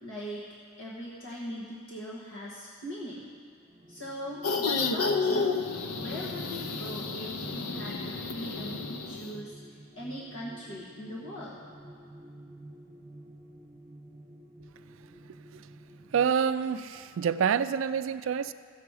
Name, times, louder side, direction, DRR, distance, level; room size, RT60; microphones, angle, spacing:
voice 1, 0.0-3.3 3.9-5.6 6.0-11.6, equal, 60° left, -6 dB, 1.4 m, -40 dB
sound 1, 3.5-16.3, right 1 dB, 25° right, 0.9 m, -48 dB
sound 2, 4.4-9.4, left 4 dB, 85° left, 0.6 m, -31 dB
voice 2, 16.1-18.5, right 7 dB, 60° right, 13 dB, 0.3 m, -27 dB
15.5 x 7.0 x 4.8 m, 2.3 s
head